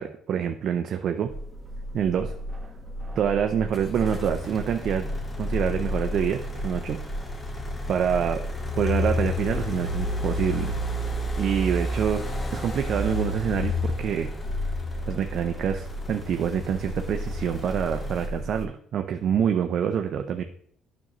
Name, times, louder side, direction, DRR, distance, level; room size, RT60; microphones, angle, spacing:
voice 1, 0.0-1.3 1.9-2.3 3.2-5.1 5.4-7.0 7.9-8.4 8.8-10.8 11.4-12.3 12.5-14.3 15.1-20.4, right 8 dB, 60° right, 5 dB, 0.5 m, -26 dB
sound 1, 1.3-18.6, equal, 20° right, 1.2 m, -36 dB
sound 2, 3.7-18.3, left 2 dB, 25° left, 1.1 m, -31 dB
sound 3, 4.2-12.8, left 1 dB, ahead, 1.7 m, -47 dB
8.8 x 6.1 x 3.0 m, 0.64 s
cardioid pair, 90°, 0 cm